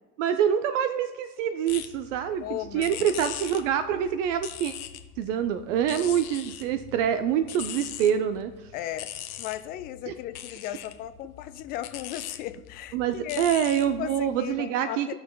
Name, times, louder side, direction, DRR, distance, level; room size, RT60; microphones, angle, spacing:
voice 1, 0.2-4.7 5.2-8.5 10.1-10.2 12.9-15.1, right 9 dB, 55° right, 10 dB, 0.6 m, -26 dB
sound 1, 1.7-14.5, left 11 dB, 65° left, 0.9 m, -41 dB
voice 2, 2.4-3.2 8.7-9.1 9.4-13.5 14.0-15.1, left 13 dB, 25° left, 12 dB, 0.3 m, -36 dB
16.0 x 6.3 x 2.2 m, 1.2 s
figure-of-eight pair, 70°, 46 cm